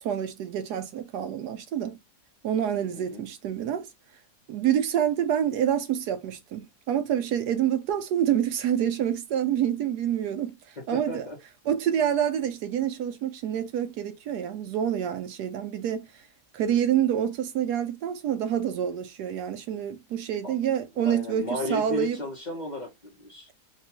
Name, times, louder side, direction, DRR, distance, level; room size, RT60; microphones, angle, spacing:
voice 1, 0.0-2.0 2.4-3.9 4.5-10.6 10.9-11.3 11.7-16.1 16.5-22.2, right 9 dB, 80° right, 1.2 m, -27 dB
voice 2, 2.9-3.3 10.8-11.4 20.4-20.5 21.0-23.5, left 1 dB, 35° left, 0.7 m, -34 dB
4.1 x 2.2 x 2.8 m
omnidirectional pair, 1.7 m